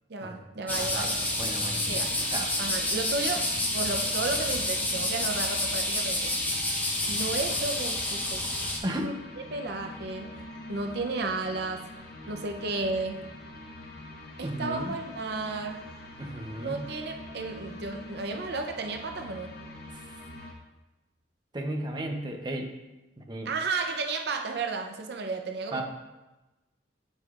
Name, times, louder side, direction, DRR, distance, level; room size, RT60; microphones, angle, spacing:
voice 1, 0.1-1.3 1.9-2.1 2.6-3.5 3.7-6.3 7.1-8.5 9.0-9.1 9.5-10.3 10.7-11.8 12.3-13.2 14.4-15.8 16.6-19.5 23.4-25.8, right 3 dB, 65° right, 5 dB, 0.6 m, -33 dB
sound 1, 0.7-20.5, left 1 dB, 60° left, 1.1 m, -45 dB
sound 2, 0.7-8.8, left 1 dB, 10° left, 0.8 m, -29 dB
voice 2, 0.7-1.1 1.4-2.0 2.3-2.5 8.8-9.1 14.4-15.0 16.2-16.9 19.9-20.0 21.5-22.7 23.3-23.5 25.7-25.8, right 1 dB, 25° right, 3 dB, 0.7 m, -34 dB
8.0 x 7.9 x 2.4 m, 1.1 s
head